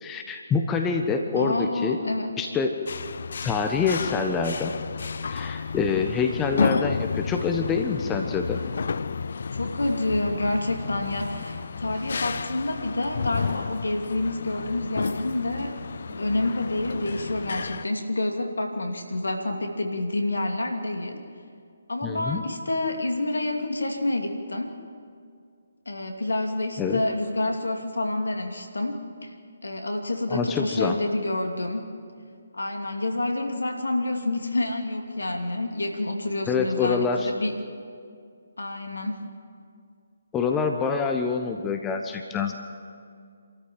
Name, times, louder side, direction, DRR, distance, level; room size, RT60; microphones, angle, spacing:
voice 1, 0.0-2.0 2.4-2.8 3.4-4.7 5.3-8.6 22.0-22.4 26.8-27.0 30.3-31.0 36.5-37.3 40.3-42.5, left 5 dB, 15° left, 4 dB, 1.1 m, -26 dB
voice 2, 1.3-2.3 9.5-15.7 16.1-21.2 21.9-24.7 25.9-29.3 29.6-31.8 32.5-37.5 38.6-39.2, left 2 dB, 75° left, 3 dB, 2.7 m, -28 dB
sound 1, 2.9-17.9, left 5 dB, 55° left, 0.5 m, -31 dB
27.5 x 13.5 x 7.7 m, 2.3 s
figure-of-eight pair, 140°, 0 cm